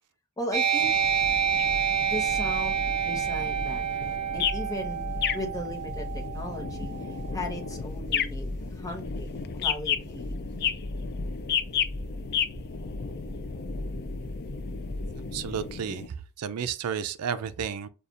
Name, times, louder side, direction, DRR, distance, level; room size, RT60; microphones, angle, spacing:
voice 1, 0.4-0.9 2.1-5.1 5.3-10.3, left 1 dB, 15° left, 0.8 m, -37 dB
sound 1, 0.5-7.6, right 7 dB, 65° right, 1.3 m, -28 dB
sound 2, 0.8-16.1, left 7 dB, 45° left, 0.4 m, -34 dB
sound 3, 1.0-15.3, left 1 dB, 25° right, 1.2 m, -38 dB
voice 2, 15.3-17.9, right 7 dB, 85° right, 0.4 m, -32 dB
6.8 x 2.4 x 2.4 m
head